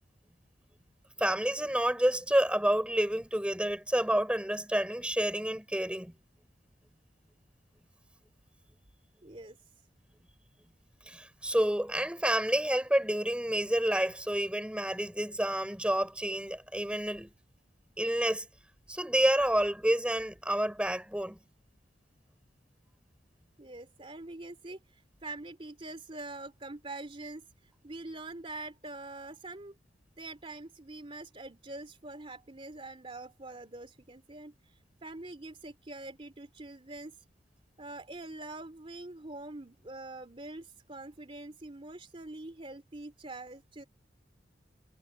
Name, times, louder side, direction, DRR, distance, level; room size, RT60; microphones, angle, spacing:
voice 1, 1.2-6.1 11.1-17.3 18.0-18.5 18.9-21.4, right 1 dB, 5° right, 6.0 m, -29 dB
voice 2, 9.2-9.6 23.6-27.4 27.8-29.7 30.2-37.2 37.8-43.8, right 2 dB, 30° right, 3.2 m, -44 dB
head